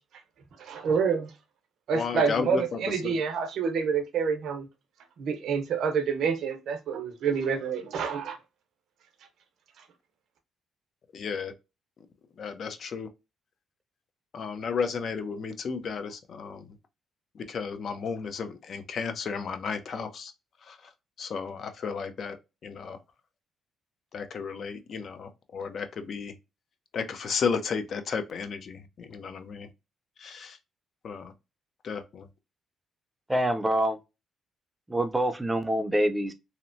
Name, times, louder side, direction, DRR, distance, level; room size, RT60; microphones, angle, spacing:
voice 1, 0.6-1.3 1.9-4.7 5.2-8.4, right 6 dB, 70° right, 0.7 m, -28 dB
voice 2, 1.9-3.1 11.1-11.5 12.4-13.1 14.3-16.7 17.3-20.3 20.6-20.8 21.2-22.4 22.6-23.0 24.1-26.3 26.9-29.7 30.2-30.6 31.0-31.3 31.8-32.3, left 5 dB, 55° left, 0.5 m, -33 dB
voice 3, 33.3-34.0 34.9-36.3, right 1 dB, 10° right, 0.5 m, -26 dB
2.8 x 2.0 x 2.5 m
cardioid pair, 90°, 0 cm